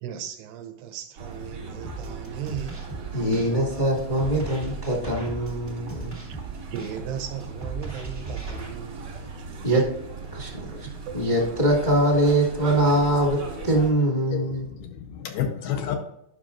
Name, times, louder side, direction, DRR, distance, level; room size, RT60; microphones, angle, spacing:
voice 1, 0.0-2.8 6.3-9.8 11.1-11.3, right 9 dB, 80° right, 7 dB, 2.3 m, -37 dB
sound 1, 1.2-13.9, right 4 dB, 60° right, 1.4 m, -38 dB
sound 2, 1.8-8.7, right 3 dB, 15° right, 0.9 m, -38 dB
voice 2, 3.1-6.2 9.6-9.9 10.3-10.9 11.1-14.7, right 1 dB, 25° left, -6 dB, 1.1 m, -23 dB
voice 3, 14.3-16.0, left 9 dB, 75° left, 5 dB, 2.1 m, -30 dB
9.7 x 5.9 x 2.5 m, 0.79 s
omnidirectional pair, 4.3 m